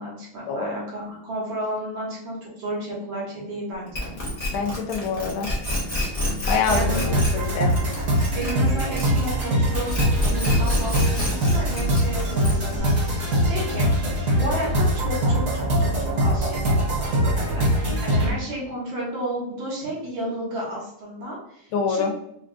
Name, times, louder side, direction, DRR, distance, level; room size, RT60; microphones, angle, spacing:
voice 1, 0.0-4.1 6.4-7.1 8.4-10.0 10.3-13.9 14.4-22.1, right 1 dB, 75° right, -4 dB, 1.9 m, -32 dB
sound 1, 3.9-9.4 9.7-12.8, left 1 dB, 45° left, 0.4 m, -28 dB
voice 2, 4.5-5.5 6.5-7.7 21.7-22.1, left 5 dB, 90° left, 2 dB, 1.5 m, -26 dB
sound 2, 6.7-18.3, equal, 45° right, 1.2 m, -22 dB
4.5 x 2.3 x 2.5 m, 0.77 s
omnidirectional pair, 2.2 m